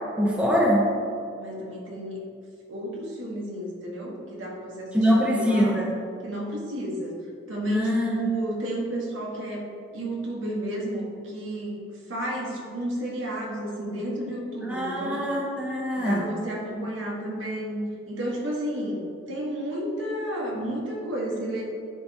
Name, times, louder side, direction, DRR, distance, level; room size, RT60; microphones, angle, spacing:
voice 1, 0.2-0.9 4.9-5.9 7.7-8.1 14.7-16.2, equal, 5° right, -3 dB, 0.9 m, -23 dB
voice 2, 1.4-2.2 2.7-5.8 6.2-7.1 7.5-15.2 15.9-17.8 18.1-21.6, right 1 dB, 85° right, -3 dB, 1.8 m, -32 dB
12.5 x 5.1 x 3.0 m, 2.5 s
head